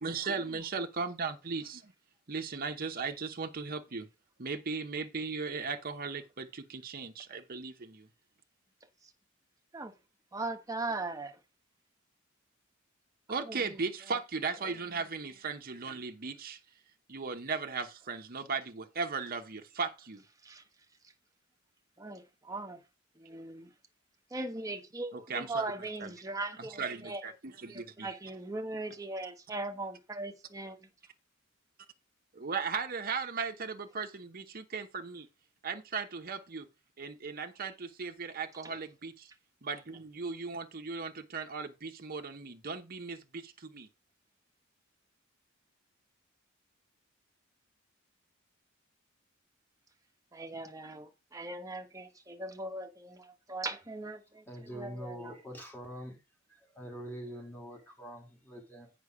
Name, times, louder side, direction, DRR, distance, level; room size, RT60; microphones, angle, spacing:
voice 1, 0.0-1.9 2.3-4.1 4.4-8.1 13.3-16.6 17.1-20.2 25.1-25.7 26.0-26.1 26.6-28.1 32.3-35.3 35.6-36.7 37.0-39.3 39.6-43.9, right 4 dB, 45° right, 0.9 m, -37 dB
voice 2, 10.3-11.4 13.4-13.8 20.4-20.6 22.0-22.8 23.2-23.7 24.3-27.2 27.7-30.9 38.6-38.8 50.3-55.3, right 2 dB, 15° right, 1.2 m, -39 dB
voice 3, 54.5-56.2 56.5-58.9, equal, 10° left, 3.0 m, -44 dB
8.1 x 6.0 x 4.8 m
head